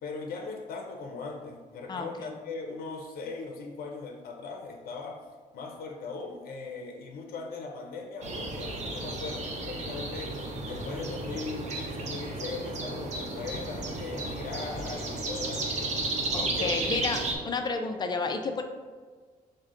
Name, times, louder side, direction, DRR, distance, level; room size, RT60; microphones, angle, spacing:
voice 1, 0.0-5.2 5.5-17.0 17.3-17.5, left 4 dB, 70° left, 2 dB, 0.6 m, -39 dB
voice 2, 1.9-2.3 16.3-18.6, left 4 dB, 25° left, 5 dB, 0.4 m, -31 dB
sound 1, 8.2-17.3, right 2 dB, 45° right, 0.7 m, -33 dB
6.2 x 2.1 x 3.7 m, 1.5 s
cardioid pair, 135°, 16 cm